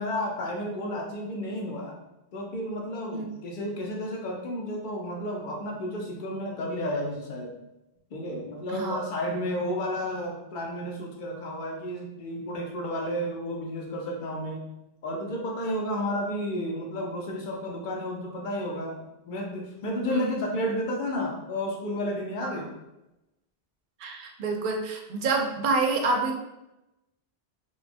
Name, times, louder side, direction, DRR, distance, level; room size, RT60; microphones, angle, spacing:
voice 1, 0.0-1.9 2.3-7.5 8.1-14.6 15.0-22.7, equal, 55° left, -1 dB, 0.7 m, -32 dB
voice 2, 8.7-9.1 20.0-20.4 22.4-22.6 24.0-26.4, right 3 dB, 60° right, 2 dB, 0.6 m, -28 dB
3.0 x 2.2 x 2.5 m, 0.94 s
omnidirectional pair, 1.1 m